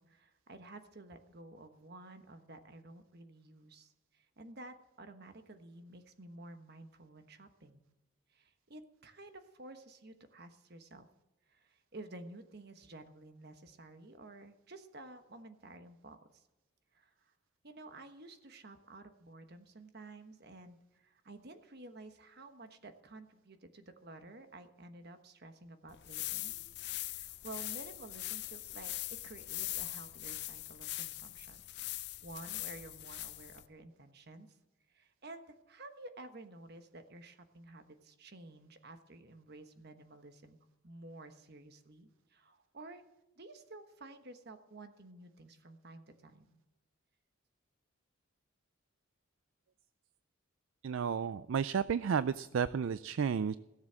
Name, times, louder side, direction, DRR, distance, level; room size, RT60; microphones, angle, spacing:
voice 1, 0.0-7.8 8.3-11.1 11.5-16.4 16.9-17.1 17.6-26.5 26.9-31.6 32.2-34.5 34.9-40.6 40.8-43.0 43.4-46.4, right 2 dB, 50° right, 8 dB, 1.3 m, -52 dB
sound 1, 25.9-33.7, left 16 dB, 50° left, 0.5 m, -41 dB
voice 2, 50.8-53.6, right 6 dB, 65° right, 15 dB, 0.3 m, -32 dB
17.0 x 7.4 x 7.4 m, 0.99 s
head